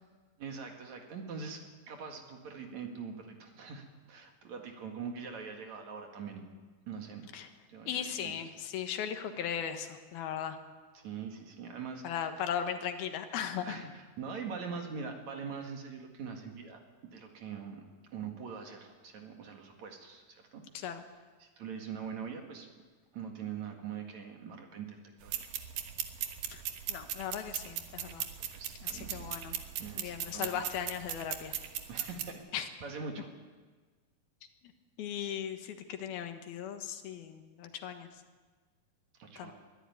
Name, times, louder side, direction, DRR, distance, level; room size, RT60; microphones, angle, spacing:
voice 1, 0.4-6.4 6.9-7.3 7.7-8.4 10.9-12.2 13.7-16.8 17.1-20.9 21.4-22.7 23.1-25.5 28.5-29.4 29.8-30.6 31.5-33.3 39.2-39.5, right 6 dB, 55° right, 3 dB, 3.1 m, -43 dB
voice 2, 7.9-10.6 12.0-13.8 20.7-21.0 26.5-26.6 26.9-28.3 29.1-29.6 30.0-31.5 32.5-32.6 35.0-38.1 39.4-39.5, left 8 dB, 90° left, 7 dB, 3.3 m, -37 dB
sound 1, 25.2-32.3, right 10 dB, 70° right, 2.9 m, -39 dB
22.0 x 13.0 x 9.3 m, 1.4 s
omnidirectional pair, 4.2 m